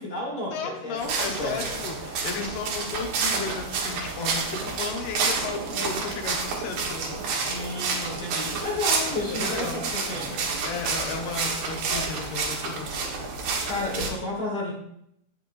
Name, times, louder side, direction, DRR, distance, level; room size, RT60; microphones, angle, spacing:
voice 1, 0.0-1.0 1.3-1.7 5.7-6.0 7.4-10.5 13.6-14.7, left 2 dB, 50° left, -3 dB, 1.7 m, -32 dB
voice 2, 0.5-7.1 9.3-9.8 10.6-12.9, left 5 dB, 75° left, 3 dB, 3.2 m, -34 dB
sound 1, 1.0-14.1, right 4 dB, 65° right, 3.0 m, -29 dB
17.0 x 6.4 x 2.6 m, 0.74 s
omnidirectional pair, 4.7 m